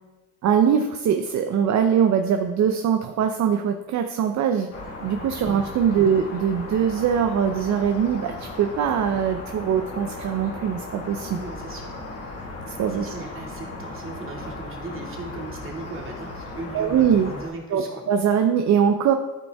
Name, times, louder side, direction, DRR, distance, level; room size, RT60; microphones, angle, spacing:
voice 1, 0.4-4.7 5.0-11.4 12.8-13.1 16.7-17.3 17.7-19.1, right 8 dB, 65° right, 6 dB, 0.6 m, -22 dB
sound 1, 4.7-17.5, left 2 dB, 50° left, 1.8 m, -37 dB
voice 2, 11.3-11.9 12.9-18.0, right 2 dB, 45° right, -1 dB, 2.2 m, -38 dB
12.5 x 5.3 x 3.5 m, 1.2 s
cardioid pair, 90°, 30 cm